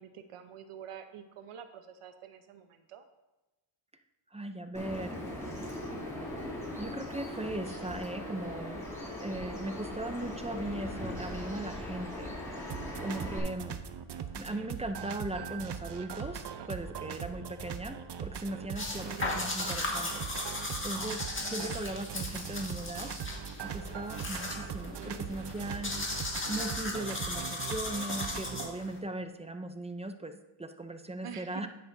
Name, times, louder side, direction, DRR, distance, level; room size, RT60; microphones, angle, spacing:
voice 1, 0.0-3.0 19.1-19.5 31.2-31.7, right 8 dB, 85° right, 8 dB, 1.0 m, -47 dB
voice 2, 4.3-5.2 6.8-12.6 13.0-13.8 14.4-20.3 20.8-21.2 21.5-23.1 23.6-25.9 26.5-31.7, right 1 dB, 15° right, 8 dB, 0.5 m, -38 dB
Bird vocalization bird call bird song, 4.7-13.4, left 1 dB, 5° left, 3.1 m, -39 dB
sound 1, 12.7-28.7, right 7 dB, 55° right, 0.7 m, -40 dB
sound 2, 18.8-29.0, left 2 dB, 25° left, 1.8 m, -37 dB
10.5 x 9.6 x 2.7 m, 1.1 s
wide cardioid pair, 120°, 50 cm